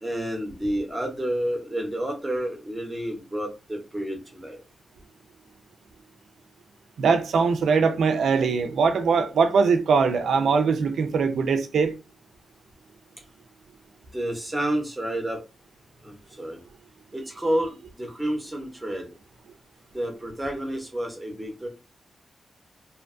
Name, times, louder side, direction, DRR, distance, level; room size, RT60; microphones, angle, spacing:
voice 1, 0.0-4.6 14.1-15.4 16.0-16.6 17.1-19.1 19.9-21.7, right 1 dB, 10° right, 0.7 m, -30 dB
voice 2, 7.0-12.0, right 5 dB, 90° right, 0.3 m, -21 dB
2.6 x 2.2 x 2.4 m
wide cardioid pair, 160°, 0 cm